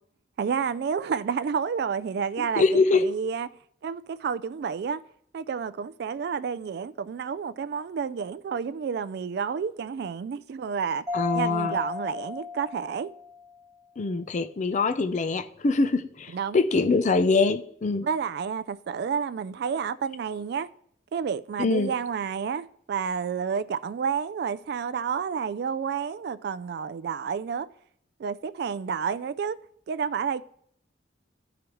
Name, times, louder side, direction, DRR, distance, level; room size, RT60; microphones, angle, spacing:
voice 1, 0.4-3.5 3.8-5.0 5.3-11.0 11.3-13.1 16.3-16.6 18.0-20.7 21.1-27.7 28.2-29.6 29.9-30.4, right 6 dB, 60° right, 0.3 m, -30 dB
voice 2, 2.4-3.0 11.1-11.8 14.0-18.1 21.6-21.9, left 3 dB, 40° left, 0.4 m, -24 dB
Mallet percussion, 11.1-13.6, left 4 dB, 15° right, 1.0 m, -34 dB
12.5 x 4.9 x 3.0 m
head